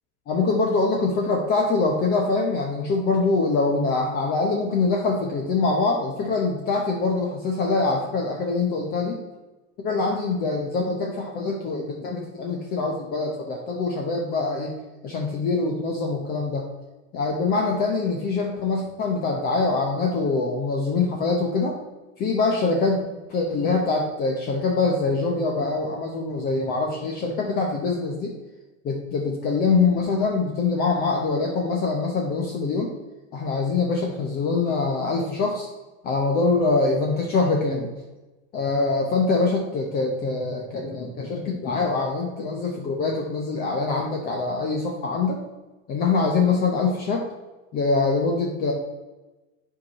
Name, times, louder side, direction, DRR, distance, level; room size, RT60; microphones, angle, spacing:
voice 1, 0.3-9.2 9.8-14.7 15.0-16.6 17.1-21.8 22.2-23.0 23.3-28.3 28.8-32.9 33.3-35.7 36.0-37.9 38.5-45.4 45.9-47.3 47.7-48.7, left 3 dB, 25° left, 0 dB, 0.9 m, -24 dB
9.3 x 4.8 x 4.2 m, 1.1 s
supercardioid pair, 165°, 34 cm